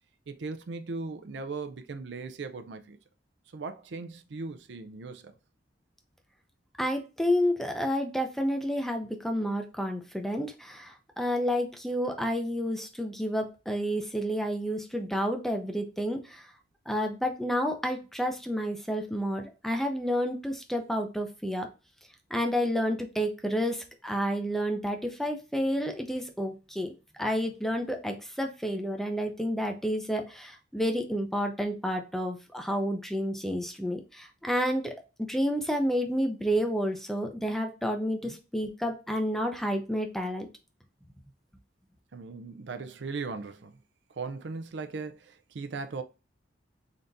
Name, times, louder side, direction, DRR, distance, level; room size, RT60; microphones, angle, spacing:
voice 1, 0.3-3.0 3.5-5.3 38.2-38.4 42.1-43.8 44.2-46.0, right 4 dB, 70° right, 0.5 m, -38 dB
voice 2, 6.8-16.5 16.9-21.7 22.3-26.9 27.2-34.9 35.2-40.5, equal, ahead, 0.5 m, -30 dB
3.9 x 3.4 x 2.6 m
head